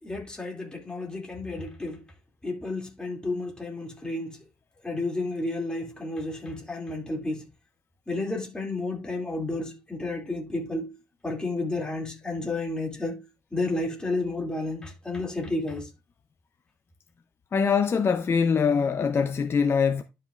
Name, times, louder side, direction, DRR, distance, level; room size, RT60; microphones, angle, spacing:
voice 1, 0.0-2.0 2.4-4.4 4.8-7.5 8.1-11.0 11.2-13.2 13.5-15.9, left 2 dB, 15° left, 2.5 m, -31 dB
voice 2, 17.5-20.0, left 6 dB, 40° left, 0.6 m, -23 dB
11.5 x 5.4 x 2.5 m
cardioid pair, 120°, 6 cm